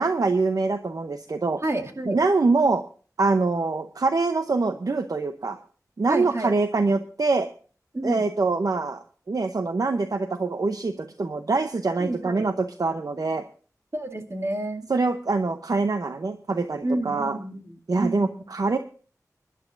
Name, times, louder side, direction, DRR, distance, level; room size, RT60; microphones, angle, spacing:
voice 1, 0.0-1.6 2.0-2.8 3.2-5.6 6.0-7.5 8.0-13.4 14.9-17.4 17.9-18.8, right 3 dB, 70° right, 8 dB, 0.7 m, -24 dB
voice 2, 1.6-2.2 6.1-6.5 7.9-8.3 12.0-12.5 13.9-14.9 16.8-18.4, right 1 dB, 45° right, 2 dB, 2.3 m, -29 dB
24.0 x 11.0 x 2.6 m, 0.40 s
wide cardioid pair, 60°, 6 cm